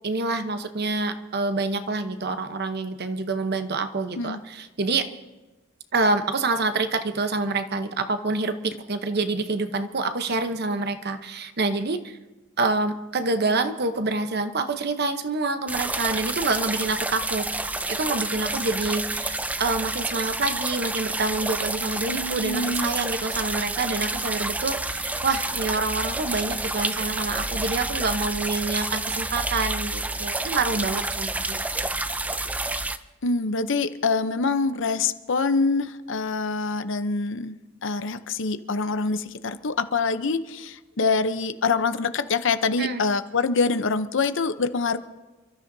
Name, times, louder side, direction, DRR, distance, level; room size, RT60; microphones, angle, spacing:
voice 1, 0.0-5.1 5.9-12.2 12.6-17.5 17.9-31.6 42.8-43.0, right 3 dB, 55° right, 8 dB, 0.9 m, -27 dB
sound 1, 15.7-33.0, right 2 dB, 5° right, 0.4 m, -29 dB
voice 2, 22.1-22.9 33.2-45.0, left 4 dB, 65° left, 11 dB, 0.7 m, -25 dB
28.5 x 13.0 x 2.7 m, 1.2 s
head